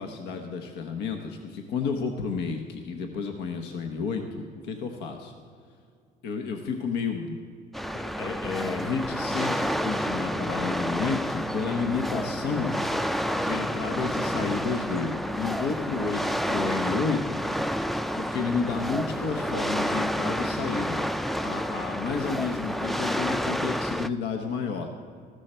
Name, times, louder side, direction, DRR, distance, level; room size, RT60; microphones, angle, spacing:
voice 1, 0.0-5.3 6.2-7.4 7.9-12.8 13.3-17.4 18.1-21.0 21.4-24.9, left 5 dB, 85° left, 4 dB, 1.0 m, -31 dB
sound 1, 7.7-24.1, equal, ahead, 0.3 m, -29 dB
14.5 x 13.0 x 4.4 m, 2.3 s
cardioid pair, 110°, 17 cm